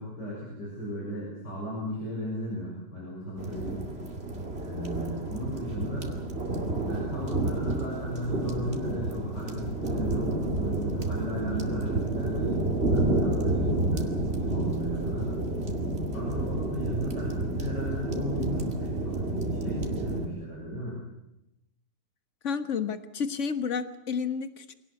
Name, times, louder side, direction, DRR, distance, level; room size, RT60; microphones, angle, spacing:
voice 1, 0.0-3.8 4.6-6.1 6.8-15.3 16.1-21.0, equal, 85° left, -4 dB, 7.4 m, -35 dB
sound 1, 3.4-20.3, right 2 dB, 35° right, 2.7 m, -30 dB
voice 2, 22.4-24.7, left 6 dB, 45° left, 10 dB, 1.7 m, -31 dB
25.0 x 18.0 x 8.4 m, 0.85 s
omnidirectional pair, 1.8 m